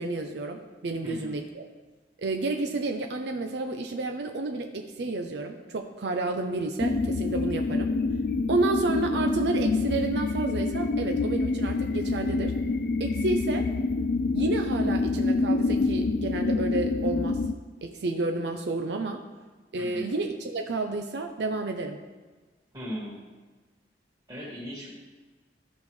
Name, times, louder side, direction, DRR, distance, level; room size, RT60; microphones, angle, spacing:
voice 1, 0.0-1.6 2.2-8.0 8.5-12.6 13.0-13.7 14.3-17.4 17.8-19.2 19.7-22.0, right 2 dB, 75° right, 4 dB, 0.5 m, -30 dB
voice 2, 1.0-1.3 19.8-20.1 22.7-23.2 24.3-24.9, equal, 20° right, -4 dB, 2.0 m, -37 dB
sound 1, 6.8-17.5, left 3 dB, 55° left, 0.3 m, -27 dB
13.5 x 5.2 x 3.2 m, 1.3 s
head